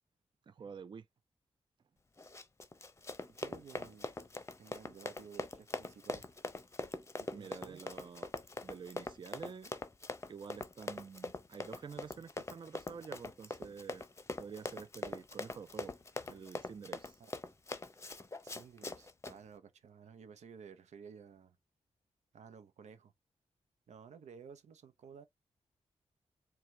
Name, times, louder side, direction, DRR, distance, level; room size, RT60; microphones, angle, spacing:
voice 1, 0.5-1.1 7.3-8.3 8.6-9.7 10.3-14.1 14.4-16.0 16.3-17.2, right 6 dB, 45° right, 0.4 m, -48 dB
Run, 2.2-19.4, left 2 dB, 25° left, 0.7 m, -43 dB
voice 2, 3.3-4.1 4.6-6.3 7.2-7.8 17.2-17.3 18.4-21.6 22.3-23.1 23.9-25.3, right 6 dB, 85° right, 0.7 m, -54 dB
4.4 x 2.2 x 3.7 m
cardioid pair, 75°, 12 cm